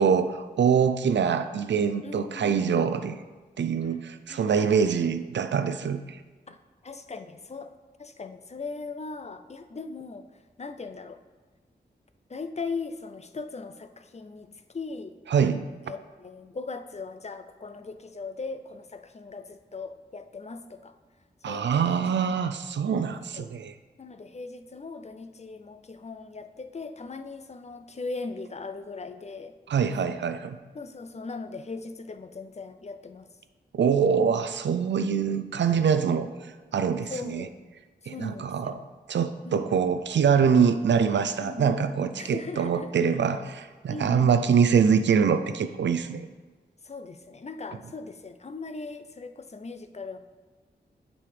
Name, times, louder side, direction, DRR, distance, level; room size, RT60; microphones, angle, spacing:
voice 1, 0.0-3.2 3.6-6.2 15.3-15.6 21.4-23.7 29.7-30.6 33.7-36.3 36.7-37.5 38.1-38.7 39.1-46.3, right 6 dB, 80° right, 11 dB, 0.4 m, -24 dB
voice 2, 2.0-2.7 3.8-4.0 4.3-5.0 6.5-6.6 6.8-10.3 10.6-11.2 12.3-15.1 15.8-20.9 21.4-22.4 22.9-23.5 24.0-29.6 30.7-33.3 37.1-37.5 38.0-38.8 39.4-39.8 41.4-41.8 42.2-42.9 43.9-44.5 46.8-50.2, left 4 dB, 35° left, 9 dB, 0.5 m, -39 dB
8.3 x 5.4 x 3.4 m, 1.3 s
cardioid pair, 55°, 18 cm